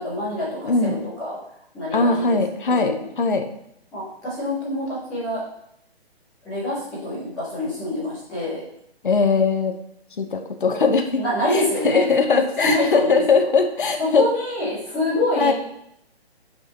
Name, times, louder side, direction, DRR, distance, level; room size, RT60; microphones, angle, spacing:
voice 1, 0.0-1.4 1.7-2.4 2.7-3.1 3.9-5.4 6.4-8.6 11.2-13.5 14.1-15.5, left 1 dB, ahead, -13 dB, 0.5 m, -26 dB
voice 2, 0.6-1.0 1.9-3.5 9.0-9.7 10.2-11.2 11.5-14.3 15.4-15.5, left 4 dB, 50° left, 6 dB, 0.9 m, -20 dB
4.9 x 4.8 x 4.3 m, 0.73 s
figure-of-eight pair, 140°, 32 cm